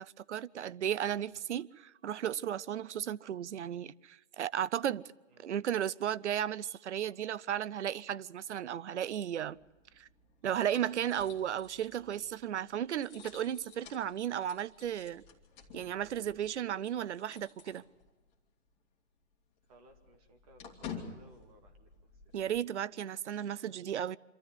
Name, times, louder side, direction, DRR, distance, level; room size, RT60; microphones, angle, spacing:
voice 1, 0.0-5.0 5.4-9.6 10.0-10.1 10.4-15.2 15.7-17.8 22.3-24.2, right 10 dB, 70° right, 0.7 m, -34 dB
voice 2, 5.3-5.7 17.7-17.9 19.7-22.3, right 1 dB, 30° right, 2.4 m, -62 dB
sound 1, 9.5-18.3 18.6-18.8 19.1-22.6, left 6 dB, 15° left, 2.4 m, -51 dB
26.5 x 13.5 x 9.6 m
hypercardioid pair, 160°, 36 cm